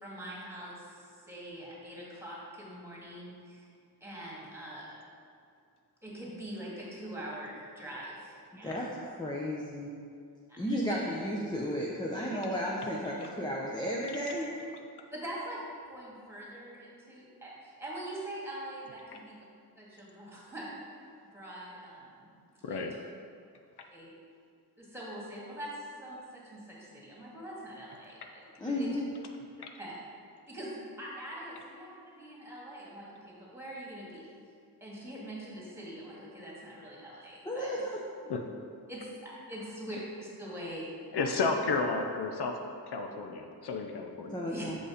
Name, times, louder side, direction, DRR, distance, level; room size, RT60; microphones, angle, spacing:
voice 1, 0.0-3.6 4.0-4.9 6.0-8.7 10.5-10.6 12.3-12.4 15.1-19.2 19.8-20.8 21.3-22.4 22.7-22.8 23.9-24.1 24.8-29.0 29.8-29.9 30.5-34.2 34.8-37.7 38.9-41.4 44.5-44.7, right 1 dB, 5° right, -6 dB, 1.9 m, -43 dB
voice 2, 8.6-9.9 10.6-14.5 28.6-29.0 37.4-38.0 44.3-44.8, equal, 10° left, -4 dB, 0.6 m, -33 dB
voice 3, 41.1-42.6 42.9-44.4, left 4 dB, 75° left, 4 dB, 0.7 m, -32 dB
6.6 x 5.2 x 4.9 m, 2.3 s
wide cardioid pair, 125°, 40 cm